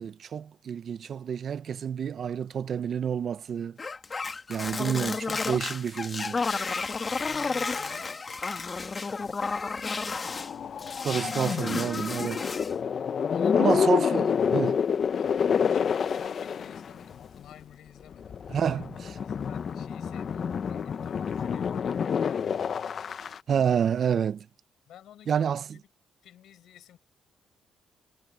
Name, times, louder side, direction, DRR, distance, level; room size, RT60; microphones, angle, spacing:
voice 1, 0.0-3.8 4.5-6.4 11.0-12.5 13.5-14.8 18.5-19.2 23.5-24.5 25.3-25.6, right 8 dB, 55° right, 0.6 m, -29 dB
sound 1, 3.8-10.5 10.8-12.8, left 4 dB, 30° left, 1.5 m, -32 dB
voice 2, 7.0-9.4 9.7-11.0 13.0-13.9 15.1-18.9 19.2-23.3 24.9-25.8 26.2-27.0, left 11 dB, 75° left, 4.9 m, -52 dB
sound 2, 10.3-17.5 18.1-23.4, left 7 dB, 50° left, 0.9 m, -28 dB
cardioid pair, 90°, 0 cm